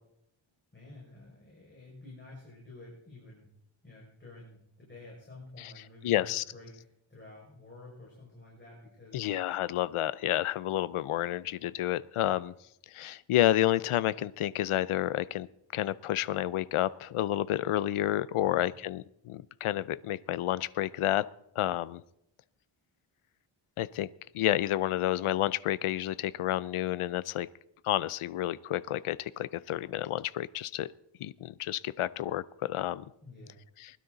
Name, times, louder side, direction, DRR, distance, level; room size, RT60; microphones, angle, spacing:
voice 1, 0.7-3.5 3.8-9.3 18.4-18.7 33.2-33.6, left 2 dB, 20° left, -5 dB, 5.7 m, -50 dB
voice 2, 6.0-6.4 9.1-12.5 12.9-15.5 15.7-21.2 21.6-22.0 23.8-24.1 24.3-27.5 27.8-30.9 31.2-32.4 32.7-33.0, left 13 dB, 80° left, 19 dB, 0.6 m, -30 dB
20.5 x 12.5 x 4.0 m, 0.77 s
wide cardioid pair, 90°, 50 cm